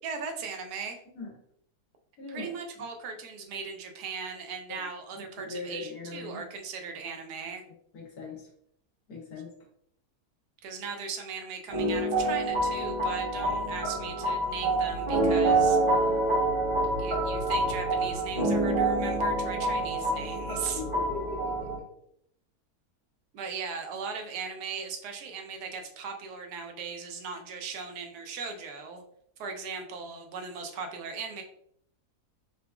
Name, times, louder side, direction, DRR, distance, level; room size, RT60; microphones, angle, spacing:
voice 1, 0.0-1.0 2.3-7.6 10.6-15.8 17.0-20.8 23.3-29.0 29.4-31.4, right 5 dB, 90° right, 4 dB, 1.2 m, -38 dB
voice 2, 2.2-2.5 4.7-4.8 5.4-6.4 7.9-8.4 9.1-9.5 20.8-21.7, left 3 dB, 80° left, 0 dB, 1.3 m, -39 dB
sound 1, 11.7-21.8, right 2 dB, 25° right, 0.7 m, -27 dB
3.8 x 2.3 x 2.3 m, 0.69 s
omnidirectional pair, 1.7 m